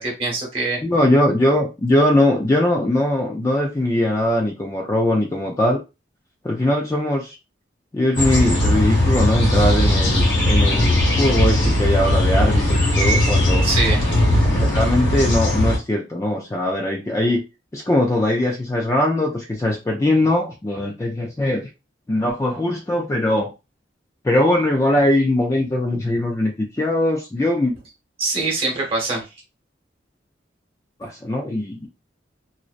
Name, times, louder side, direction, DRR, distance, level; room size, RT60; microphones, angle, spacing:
voice 1, 0.0-0.8 13.6-14.1 28.2-29.3, right 3 dB, 30° right, -2 dB, 0.9 m, -23 dB
voice 2, 0.8-5.8 6.4-7.4 7.9-13.7 14.4-17.4 17.7-21.7 22.1-23.5 24.2-27.7 31.0-31.9, left 1 dB, 15° left, 0 dB, 0.3 m, -21 dB
sound 1, 8.2-15.8, left 1 dB, 70° left, 1.2 m, -18 dB
2.6 x 2.0 x 2.4 m, 0.27 s
head